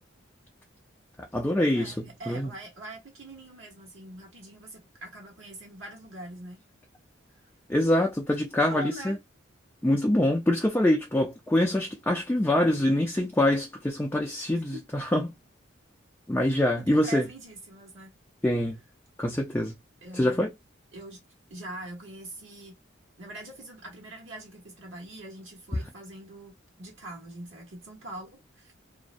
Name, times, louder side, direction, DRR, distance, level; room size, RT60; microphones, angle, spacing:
voice 1, 1.2-2.5 7.7-9.2 9.8-15.3 16.3-17.3 18.4-18.8 19.2-19.8 20.1-20.5, left 1 dB, 10° left, 0.3 m, -25 dB
voice 2, 1.7-6.6 8.7-9.2 14.5-14.9 16.9-18.1 20.0-20.5 20.9-21.2 21.5-22.7 23.2-28.7, right 1 dB, 70° right, 1.1 m, -43 dB
2.5 x 2.0 x 2.4 m
head